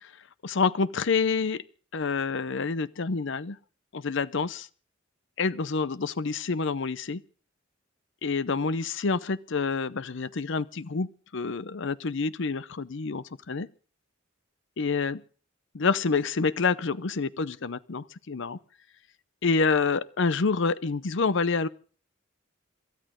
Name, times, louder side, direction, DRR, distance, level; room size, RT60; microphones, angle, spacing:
voice 1, 0.4-1.6 1.9-3.6 3.9-4.7 5.4-7.2 8.2-11.1 11.3-13.7 14.8-15.2 15.7-18.6 19.4-21.7, left 4 dB, 65° left, 17 dB, 0.7 m, -27 dB
27.0 x 13.5 x 3.7 m, 0.41 s
head